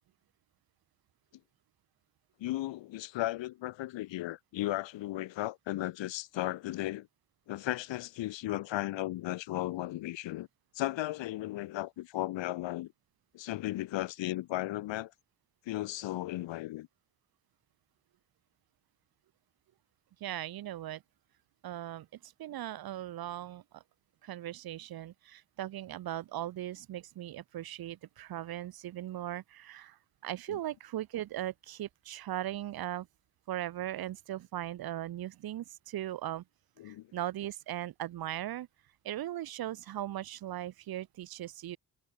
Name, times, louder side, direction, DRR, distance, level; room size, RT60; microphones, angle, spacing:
voice 1, 2.4-7.1 7.5-10.5 10.7-12.9 13.3-15.1 15.7-16.9 30.5-30.6 36.8-37.1, left 16 dB, 90° left, 1.0 m, -35 dB
voice 2, 20.2-21.0 21.6-23.8 24.2-33.1 33.5-36.4 36.8-38.7 39.0-41.8, right 13 dB, 55° right, 0.6 m, -39 dB
cardioid pair, 60°, 43 cm